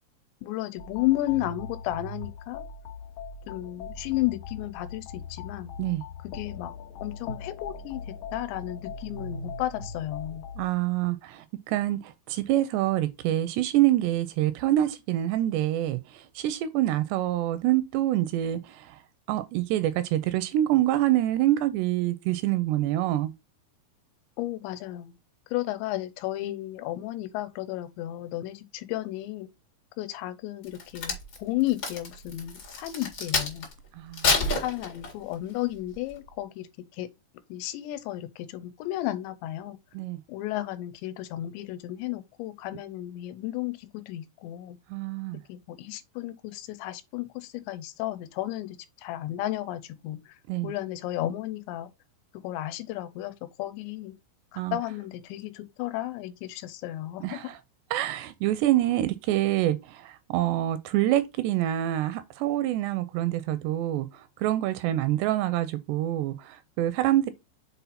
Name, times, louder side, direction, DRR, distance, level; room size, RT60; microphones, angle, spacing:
voice 1, 0.4-2.7 3.5-5.7 6.3-6.7 7.0-10.5 24.4-25.1 25.5-29.5 30.0-33.7 34.2-36.7 36.9-37.1 37.5-39.8 40.3-44.8 45.5-50.4 50.6-51.9 52.4-54.1 54.5-57.4, left 15 dB, 85° left, 2.9 m, -33 dB
sound 1, 0.8-10.7, left 4 dB, 65° left, 1.9 m, -40 dB
voice 2, 10.6-19.0 19.3-23.3 34.0-34.4 39.9-40.2 44.9-45.4 50.5-50.7 54.6-54.8 57.2-57.6 57.9-67.3, right 14 dB, 85° right, 2.5 m, -26 dB
Crack, 30.6-33.7 34.1-35.3 35.9-36.1, left 3 dB, 45° left, 1.4 m, -28 dB
6.9 x 4.2 x 4.1 m
omnidirectional pair, 5.1 m